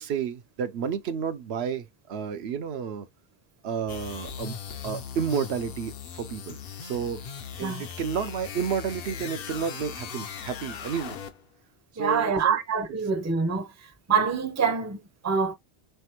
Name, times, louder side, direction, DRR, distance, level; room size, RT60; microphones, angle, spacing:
voice 1, 0.0-3.1 3.6-4.6 4.8-7.2 7.6-11.2 11.9-12.6, right 7 dB, 75° right, 0.8 m, -31 dB
sound 1, 3.9-11.5, left 7 dB, 65° left, 0.9 m, -38 dB
voice 2, 12.0-15.5, right 5 dB, 20° right, 0.5 m, -26 dB
4.0 x 3.4 x 2.9 m
omnidirectional pair, 1.1 m